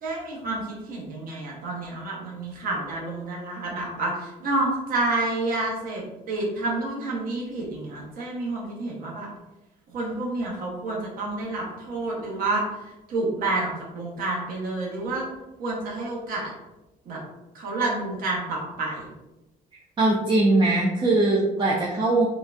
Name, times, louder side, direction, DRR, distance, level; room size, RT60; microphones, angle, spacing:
voice 1, 0.0-9.3 9.9-12.6 13.1-15.2 15.6-16.5 17.1-17.2 17.5-19.1, right 2 dB, 60° right, -3 dB, 1.1 m, -29 dB
voice 2, 20.0-22.3, right 2 dB, 30° right, -3 dB, 0.5 m, -21 dB
3.7 x 2.3 x 2.5 m, 0.99 s
cardioid pair, 110°, 17 cm